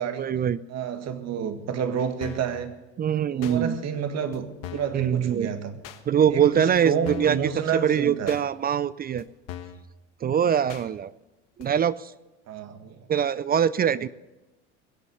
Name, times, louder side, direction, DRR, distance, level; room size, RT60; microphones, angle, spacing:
voice 1, 0.2-0.6 3.0-3.8 4.9-5.5 6.1-7.4 7.7-9.2 10.2-11.1 11.6-12.1 13.1-14.1, right 8 dB, 30° right, 18 dB, 0.4 m, -23 dB
voice 2, 0.7-2.7 3.3-5.8 6.3-8.4 12.5-13.1, right 7 dB, 50° right, 8 dB, 1.8 m, -29 dB
sound 1, 2.2-2.5 3.4-3.6 4.3-4.4 4.6-5.0 5.8-6.0 6.7-6.8 7.0-7.4 8.3-8.4 9.2-9.3 9.5-9.8 10.7-10.9 11.6-11.7, left 10 dB, 65° left, 1.4 m, -39 dB
22.0 x 8.1 x 6.5 m, 1.0 s
hypercardioid pair, 85°, 34 cm